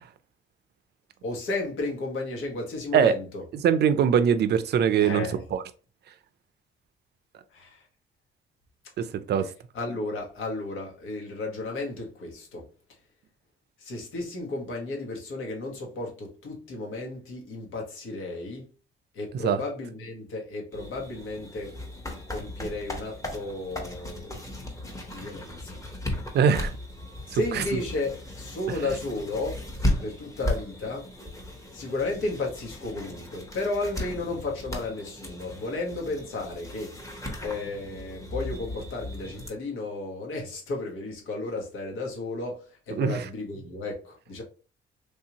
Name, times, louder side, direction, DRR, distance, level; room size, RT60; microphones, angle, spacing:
voice 1, 1.2-3.4 5.0-5.4 7.5-7.9 9.7-12.7 13.8-18.7 19.1-21.8 22.3-24.4 25.1-25.8 26.1-26.4 27.3-29.6 30.0-31.1 31.7-36.9 37.4-44.4, left 2 dB, 80° left, 1.3 m, -33 dB
voice 2, 3.5-5.6 9.0-9.5 19.4-19.6 26.3-26.7 27.3-27.6 43.0-43.2, right 7 dB, 55° right, 0.5 m, -22 dB
sound 1, 20.7-39.5, left 1 dB, 15° left, 1.0 m, -36 dB
3.2 x 2.7 x 2.8 m
cardioid pair, 90°, 20 cm